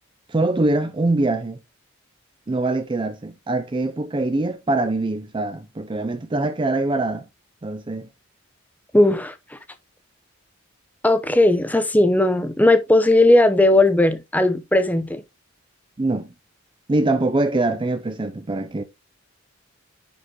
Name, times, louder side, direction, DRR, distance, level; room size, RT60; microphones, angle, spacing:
voice 1, 0.3-1.6 2.5-7.2 7.6-8.1 16.0-16.3 16.9-18.8, right 2 dB, 25° right, 0.4 m, -23 dB
voice 2, 8.9-9.3 11.0-15.2, left 1 dB, 10° left, 0.8 m, -17 dB
10.0 x 4.9 x 2.9 m
head